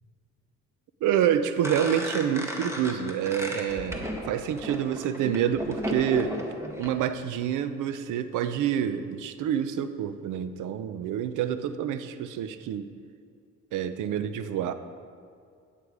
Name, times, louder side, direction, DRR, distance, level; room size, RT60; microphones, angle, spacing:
voice 1, 1.0-6.4 6.8-12.9 13.7-14.7, right 9 dB, 85° right, 11 dB, 0.6 m, -27 dB
sound 1, 1.6-6.9, equal, 10° right, 1.5 m, -34 dB
9.6 x 8.6 x 4.8 m, 2.3 s
cardioid pair, 90°, 30 cm